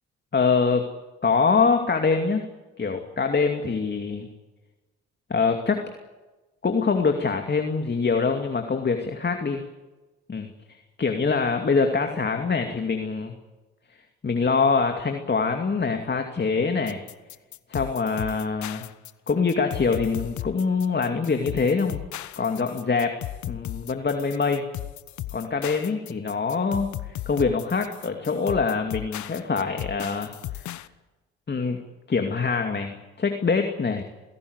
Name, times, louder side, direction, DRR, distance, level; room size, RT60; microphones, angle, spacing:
voice 1, 0.3-0.8 1.2-2.4 2.8-4.3 5.3-5.8 6.6-9.6 10.3-13.3 14.2-17.0 17.7-18.8 19.3-22.0 22.4-23.1 23.5-24.6 25.3-30.7 31.5-31.8 32.1-34.0, left 4 dB, 35° left, 5 dB, 2.5 m, -24 dB
sound 1, 16.9-30.9, left 14 dB, 65° left, 1.1 m, -36 dB
27.0 x 17.0 x 8.2 m, 1.2 s
hypercardioid pair, 60°, 31 cm